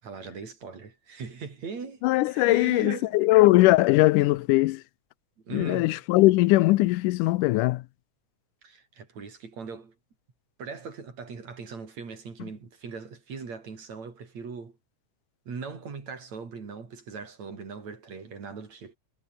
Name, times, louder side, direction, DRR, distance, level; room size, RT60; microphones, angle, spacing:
voice 1, 0.0-3.2 5.4-6.0 8.6-10.0 10.6-14.8 15.5-19.0, right 5 dB, 60° right, 5.5 m, -40 dB
voice 2, 2.0-4.8 5.5-7.8, left 19 dB, 90° left, 2.2 m, -20 dB
omnidirectional pair, 3.6 m